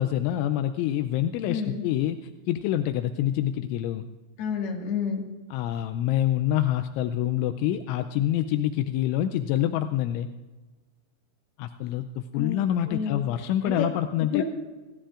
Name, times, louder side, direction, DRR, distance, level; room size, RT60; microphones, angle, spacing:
voice 1, 0.0-2.2 2.5-4.1 5.5-10.3 11.6-14.4, left 12 dB, 85° left, 9 dB, 2.7 m, -26 dB
voice 2, 1.4-1.8 4.4-5.2 12.3-12.6 12.9-13.2 13.6-13.9 14.3-14.4, left 7 dB, 60° left, 1 dB, 3.3 m, -29 dB
27.0 x 15.5 x 2.5 m, 1.3 s
omnidirectional pair, 5.9 m